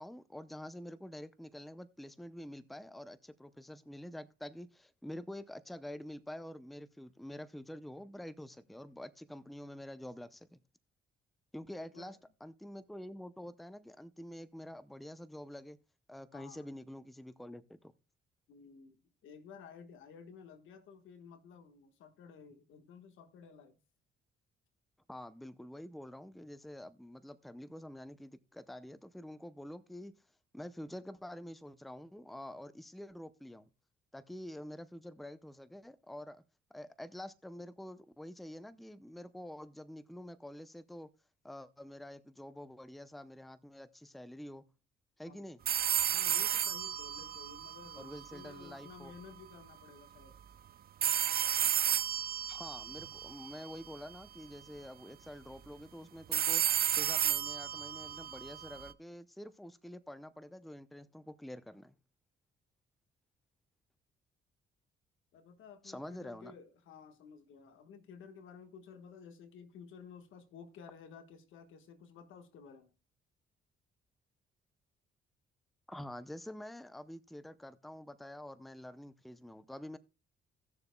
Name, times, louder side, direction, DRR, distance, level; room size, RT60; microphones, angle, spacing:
voice 1, 0.0-10.6 11.5-15.8 16.1-17.9 25.1-30.1 30.5-33.7 34.1-36.4 36.7-41.1 41.4-44.6 45.2-45.6 48.0-49.1 52.5-56.6 56.9-62.0 65.8-66.6 75.9-80.0, left 1 dB, ahead, 0.6 m, -47 dB
voice 2, 11.8-12.2 16.3-16.7 18.5-23.8 45.3-45.4 46.1-50.4 65.3-72.9, left 6 dB, 80° left, 1.4 m, -54 dB
sound 1, 45.7-48.7 51.0-54.1 56.3-58.9, right 9 dB, 50° right, 0.5 m, -33 dB
18.0 x 6.9 x 2.2 m
cardioid pair, 90°, 20 cm